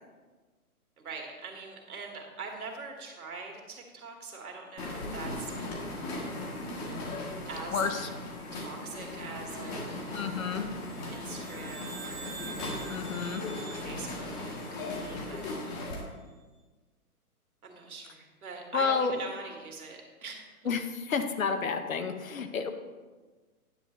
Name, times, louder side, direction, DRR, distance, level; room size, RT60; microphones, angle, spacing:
voice 1, 1.0-6.3 7.5-8.1 8.5-10.4 11.1-12.4 13.8-15.9 17.6-20.7, right 4 dB, 70° right, 1 dB, 2.0 m, -43 dB
sound 1, 4.8-16.0, left 2 dB, 25° left, 1.4 m, -38 dB
voice 2, 7.7-8.1 10.1-10.6 12.9-13.4 18.7-19.1 20.6-22.7, left 5 dB, 60° left, 7 dB, 1.0 m, -30 dB
sound 2, 10.8-15.3, right 5 dB, 40° right, 1.4 m, -47 dB
9.8 x 7.3 x 3.1 m, 1.3 s
figure-of-eight pair, 130°, 45 cm